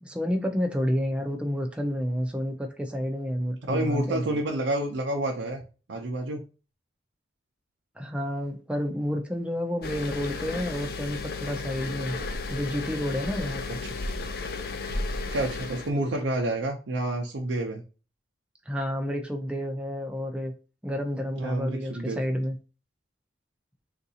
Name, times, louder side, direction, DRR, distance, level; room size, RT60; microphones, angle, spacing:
voice 1, 0.0-4.4 8.0-12.2 12.5-13.6 18.7-20.5 20.8-22.6, equal, 5° right, 0.5 m, -30 dB
voice 2, 3.7-5.6 5.9-6.4 15.3-17.8 21.4-22.2, right 1 dB, 90° right, 0.6 m, -29 dB
sound 1, 9.8-15.9, left 3 dB, 55° left, 0.5 m, -33 dB
3.8 x 2.5 x 2.7 m
head